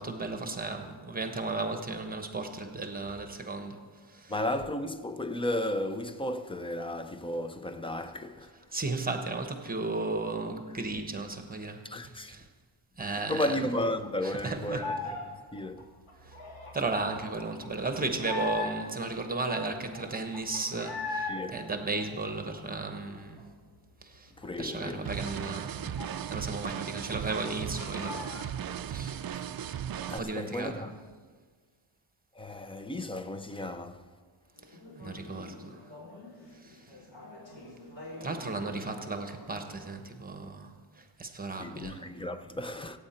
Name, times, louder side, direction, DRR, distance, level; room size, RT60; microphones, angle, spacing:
voice 1, 0.0-3.8 4.1-4.3 8.7-12.4 13.0-13.5 14.2-14.9 16.3-16.4 16.7-23.4 24.0-24.3 24.6-28.5 28.9-29.2 29.7-29.8 30.2-30.8 35.0-35.8 36.6-36.7 38.2-40.7 41.2-42.0, right 3 dB, 15° right, 1.0 m, -35 dB
voice 2, 4.3-8.5 11.8-12.3 13.0-15.9 21.3-21.7 24.4-25.1 26.6-26.8 29.3-29.5 30.1-31.0 32.4-34.0 41.6-43.0, left 1 dB, 10° left, 0.5 m, -34 dB
sound 1, 13.6-15.2 15.5-19.0 19.4-19.5 19.7-21.4 21.7-23.4 23.7-23.8 24.1-26.6 26.9-27.0 27.3-28.5, left 3 dB, 80° left, 3.2 m, -39 dB
sound 2, 25.0-30.2, right 9 dB, 45° right, 0.4 m, -36 dB
Conversation / Chatter, 34.6-39.9, left 1 dB, 65° left, 4.4 m, -48 dB
24.5 x 8.9 x 4.4 m
wide cardioid pair, 180°, 50 cm